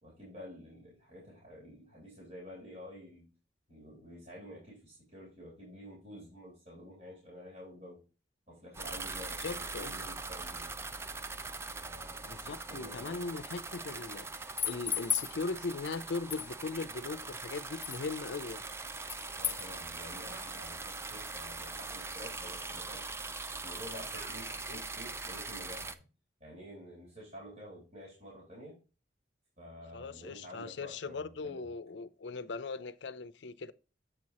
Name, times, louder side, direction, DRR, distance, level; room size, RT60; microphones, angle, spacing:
voice 1, 0.0-3.3 3.7-8.0 8.5-10.7 11.8-12.3 12.7-13.2 19.4-23.1 23.6-26.1 26.4-28.8 29.6-31.7, equal, 40° right, 3.4 m, -50 dB
sound 1, 8.7-25.9, right 3 dB, 15° right, 0.4 m, -42 dB
voice 2, 9.4-9.9 12.2-18.6 24.7-24.8 29.9-33.7, left 4 dB, 80° left, 0.5 m, -39 dB
sound 2, 14.4-15.3 16.3-16.5 17.8-18.0 19.1-19.7, left 8 dB, 10° left, 0.7 m, -33 dB
sound 3, 20.2-21.2 21.5-22.3 23.9-24.8, right 1 dB, 75° right, 2.9 m, -54 dB
7.9 x 4.7 x 4.1 m
head